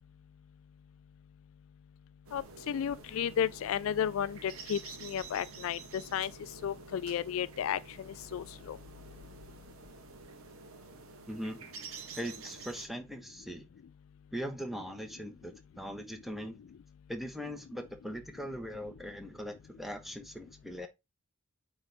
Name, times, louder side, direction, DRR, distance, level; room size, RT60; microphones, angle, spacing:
voice 1, 2.3-6.3 6.6-8.8, left 8 dB, 65° left, 0.3 m, -33 dB
sound 1, 2.3-12.9, right 5 dB, 65° right, 1.3 m, -49 dB
voice 2, 11.3-11.6 12.2-13.7 14.3-16.6 17.1-20.9, equal, ahead, 1.1 m, -40 dB
8.9 x 3.9 x 3.4 m
head